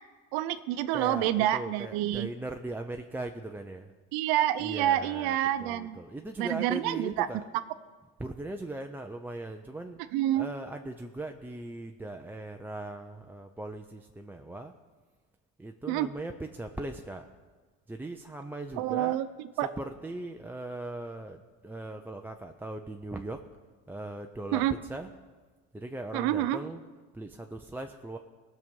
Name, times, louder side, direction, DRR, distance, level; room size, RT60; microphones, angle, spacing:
voice 1, 0.3-2.3 4.1-6.0 6.4-7.3 10.1-10.5 15.9-16.1 18.8-19.3 19.6-19.7 24.5-24.7 26.1-26.6, right 13 dB, 70° right, 13 dB, 0.7 m, -27 dB
voice 2, 0.9-3.9 4.6-7.5 8.2-10.0 10.4-14.7 15.6-17.3 17.9-19.2 19.5-23.4 23.9-25.1 25.7-26.8 27.1-28.2, right 2 dB, 5° right, 3 dB, 0.4 m, -39 dB
18.0 x 6.6 x 5.4 m, 1.4 s
supercardioid pair, 110°, 38 cm